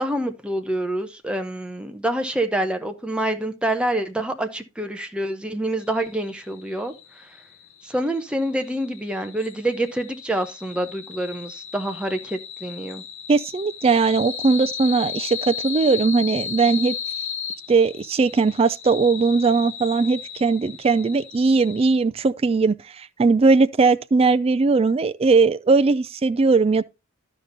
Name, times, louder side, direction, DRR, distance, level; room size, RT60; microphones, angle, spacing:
voice 1, 0.0-6.9 7.8-13.0, right 1 dB, 5° right, 0.8 m, -26 dB
sound 1, 5.8-21.9, left 7 dB, 65° left, 1.1 m, -35 dB
voice 2, 13.3-17.0 17.7-26.8, right 4 dB, 30° right, 0.3 m, -19 dB
11.5 x 5.2 x 3.9 m
head